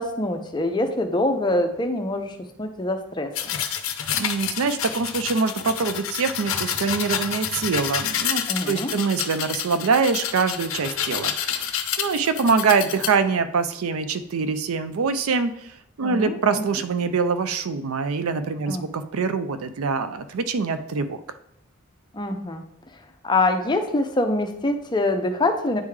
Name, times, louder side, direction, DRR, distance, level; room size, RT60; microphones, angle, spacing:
voice 1, 0.0-3.3 8.5-8.9 16.0-16.7 18.7-18.9 22.1-22.6 23.2-25.8, left 2 dB, 20° left, 6 dB, 0.5 m, -24 dB
sound 1, 3.3-13.1, left 9 dB, 70° left, 0.5 m, -28 dB
voice 2, 4.2-11.7 12.0-15.7 16.0-21.2, right 5 dB, 80° right, 11 dB, 0.5 m, -24 dB
9.4 x 3.6 x 3.2 m, 0.75 s
head